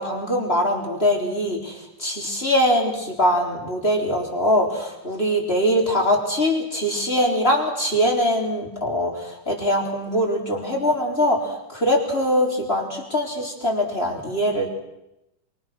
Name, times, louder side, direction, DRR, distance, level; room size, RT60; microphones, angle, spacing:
voice 1, 0.0-14.7, equal, 15° left, 1 dB, 4.1 m, -22 dB
27.0 x 23.5 x 6.3 m, 0.88 s
omnidirectional pair, 3.8 m